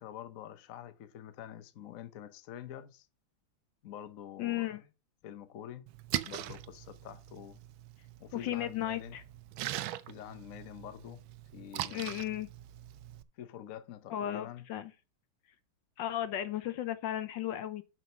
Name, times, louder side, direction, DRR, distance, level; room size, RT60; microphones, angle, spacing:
voice 1, 0.0-3.1 3.8-4.8 5.2-5.9 6.2-7.6 8.2-9.2 10.1-11.2 11.5-12.2 13.4-14.6, left 11 dB, 55° left, 0.9 m, -46 dB
voice 2, 4.4-4.8 8.3-9.2 11.9-12.5 14.1-14.9 16.0-17.8, left 12 dB, 75° left, 1.2 m, -35 dB
Splash splatter, 5.9-13.2, right 14 dB, 80° right, 1.3 m, -41 dB
7.6 x 6.1 x 6.0 m
omnidirectional pair, 2.2 m